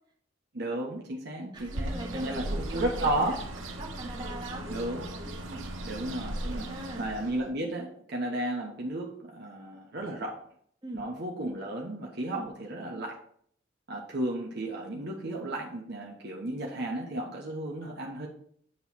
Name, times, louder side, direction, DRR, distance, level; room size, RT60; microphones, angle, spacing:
voice 1, 0.5-3.4 4.7-5.0 5.8-10.4 10.9-13.2 13.9-18.3, right 1 dB, 55° right, -1 dB, 1.0 m, -33 dB
voice 2, 1.5-3.4 3.8-4.8 5.2-5.6 6.1-6.2 6.5-7.1 10.8-11.1 12.2-12.5, right 1 dB, 25° right, -3 dB, 1.7 m, -42 dB
Bird, 1.6-7.5, right 1 dB, 80° right, 1.0 m, -37 dB
9.0 x 3.1 x 5.6 m, 0.63 s
head